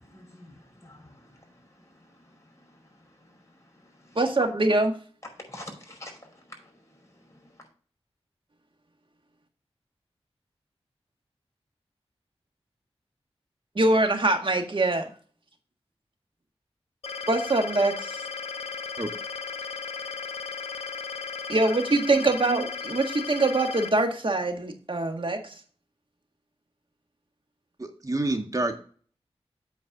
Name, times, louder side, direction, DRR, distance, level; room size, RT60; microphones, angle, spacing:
voice 1, 0.0-4.3 5.2-7.7, left 1 dB, 30° left, 5.2 m, -49 dB
voice 2, 4.2-4.9 13.8-15.1 17.3-18.2 21.5-25.5, right 2 dB, 50° right, 1.7 m, -24 dB
sound 1, 17.0-23.9, left 5 dB, 70° left, 0.8 m, -35 dB
voice 3, 27.8-28.7, right 2 dB, 35° right, 1.8 m, -28 dB
8.6 x 4.6 x 5.9 m
cardioid pair, 45°, 11 cm